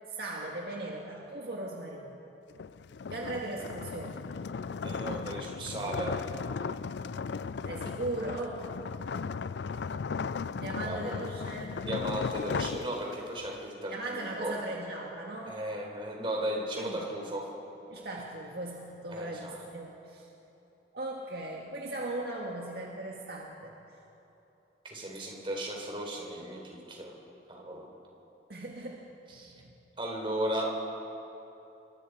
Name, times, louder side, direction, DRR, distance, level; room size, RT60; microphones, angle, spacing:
voice 1, 0.1-2.2 3.1-4.3 7.6-8.7 10.5-12.1 13.9-15.6 16.8-17.1 17.9-20.3 20.9-23.7 28.5-29.1 29.5-29.7, right 2 dB, 60° right, -2 dB, 2.0 m, -38 dB
sound 1, 2.5-13.5, left 5 dB, 75° left, 0.4 m, -36 dB
voice 2, 4.8-6.2 10.8-11.2 11.9-14.5 15.5-17.4 19.1-19.6 24.8-27.1 27.5-27.9 29.4-29.5 30.0-30.7, right 1 dB, 30° right, 0 dB, 4.2 m, -35 dB
29.0 x 24.0 x 4.9 m, 2.9 s
head